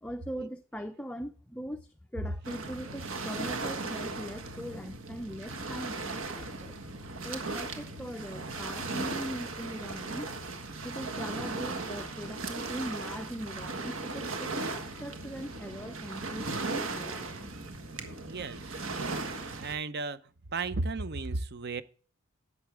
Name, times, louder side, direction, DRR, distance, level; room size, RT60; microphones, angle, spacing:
voice 1, 0.0-6.8 7.2-10.3 10.8-17.5, equal, 5° left, 0.4 m, -41 dB
Waves surf, 2.4-19.8, right 3 dB, 70° right, 1.6 m, -37 dB
voice 2, 18.3-18.7 19.5-20.2 20.5-21.8, right 3 dB, 50° right, 0.7 m, -34 dB
11.0 x 8.0 x 3.4 m
head